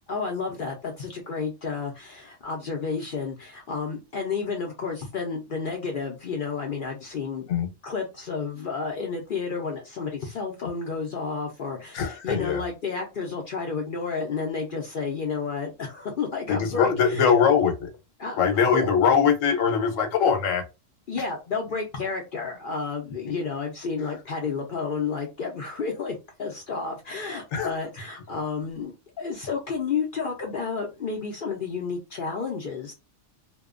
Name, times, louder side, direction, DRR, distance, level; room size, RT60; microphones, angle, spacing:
voice 1, 0.0-7.5 7.8-17.2 18.2-18.9 21.1-32.9, left 5 dB, 60° left, 0.6 m, -31 dB
voice 2, 11.9-12.6 16.5-17.9 18.4-20.6 27.5-27.7, left 6 dB, 85° left, 1.1 m, -22 dB
2.7 x 2.2 x 2.4 m
omnidirectional pair, 1.3 m